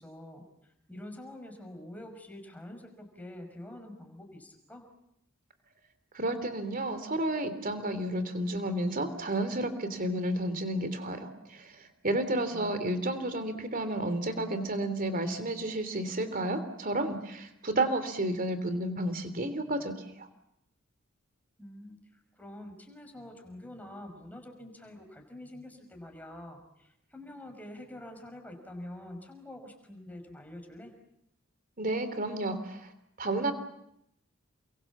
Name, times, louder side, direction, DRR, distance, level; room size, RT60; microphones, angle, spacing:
voice 1, 0.0-4.8 12.5-13.0 21.6-22.0 22.4-30.9, left 1 dB, 10° left, 4 dB, 5.5 m, -46 dB
voice 2, 6.1-20.3 31.8-32.9 33.2-33.5, right 1 dB, 45° right, 10 dB, 3.1 m, -31 dB
29.5 x 23.5 x 7.3 m, 0.80 s
head